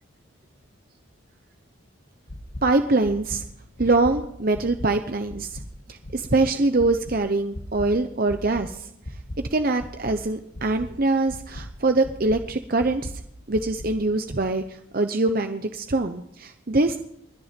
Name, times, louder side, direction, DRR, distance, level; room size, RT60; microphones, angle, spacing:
sound 1, 2.3-2.6 3.0-3.4 3.8-4.1 4.5-4.9 5.3-5.6 6.0-6.4 6.8-7.1 7.5-7.9 8.3-8.6 9.0-9.4 9.8-10.1 10.5-10.9 11.3-11.6 12.0-12.4 12.8-13.1 13.5-13.9 14.3-14.4, left 1 dB, 70° left, 2.5 m, -36 dB
voice 1, 2.6-3.4 3.8-5.6 5.9-8.9 9.5-13.1 13.5-17.0, right 2 dB, 45° right, 7 dB, 0.8 m, -23 dB
21.5 x 10.0 x 5.2 m, 0.73 s
head